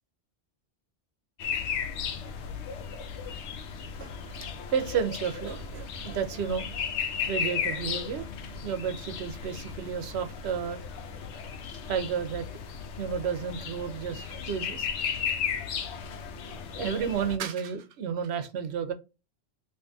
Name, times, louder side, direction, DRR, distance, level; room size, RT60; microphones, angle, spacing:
sound 1, 1.4-17.4, left 7 dB, 80° left, 0.9 m, -35 dB
voice 1, 4.0-4.3 4.7-6.9 7.2-8.3 8.6-10.8 11.9-12.5 13.0-14.9 16.5-18.9, right 7 dB, 75° right, 0.9 m, -32 dB
3.5 x 2.5 x 2.5 m
omnidirectional pair, 1.1 m